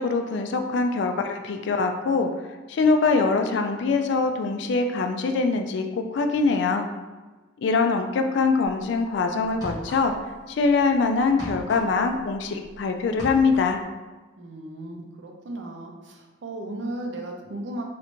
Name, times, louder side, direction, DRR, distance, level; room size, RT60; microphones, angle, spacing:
voice 1, 0.0-2.3 2.7-6.9 7.6-10.1 10.5-13.8, left 4 dB, 60° left, 6 dB, 0.3 m, -23 dB
sound 1, 8.7-8.9 9.5-10.4 10.6-12.8 13.0-13.8, equal, 20° right, 1.2 m, -38 dB
voice 2, 14.4-17.8, right 1 dB, 65° right, 1 dB, 0.5 m, -35 dB
3.2 x 2.5 x 3.0 m, 1.3 s
head